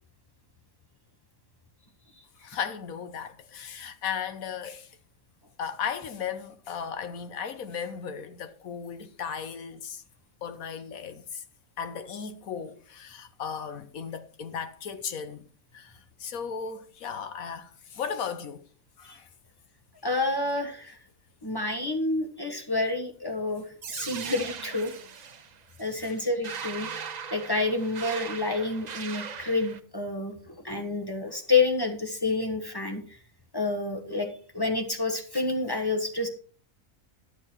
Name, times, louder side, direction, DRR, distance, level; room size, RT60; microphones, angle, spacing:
voice 1, 2.4-5.0 5.6-10.0 10.4-11.4 11.8-15.4 15.7-18.7 19.0-19.3 26.0-26.2, left 7 dB, 75° left, 1.4 m, -36 dB
voice 2, 20.0-21.0 21.4-23.7 23.9-24.9 25.8-26.9 27.3-33.0 33.5-34.3 34.5-36.3, left 3 dB, 15° left, 1.3 m, -28 dB
sound 1, 23.8-29.8, right 6 dB, 50° right, 0.5 m, -39 dB
12.0 x 6.9 x 4.4 m
omnidirectional pair, 1.5 m